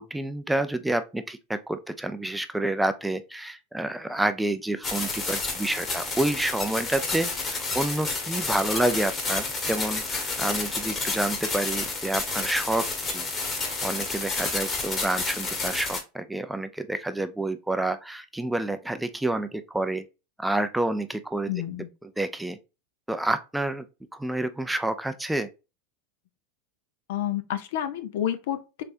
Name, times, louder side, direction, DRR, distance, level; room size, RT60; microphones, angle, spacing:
voice 1, 0.0-12.9 13.1-13.2 13.8-20.0 20.4-21.5 22.2-22.6 23.1-23.8 24.1-25.5, right 1 dB, 5° right, 0.4 m, -28 dB
sound 1, 4.8-16.0, left 3 dB, 30° left, 1.2 m, -30 dB
voice 2, 21.5-21.9 27.1-28.8, left 11 dB, 70° left, 0.5 m, -29 dB
3.3 x 3.3 x 2.5 m
hypercardioid pair, 100°, 0 cm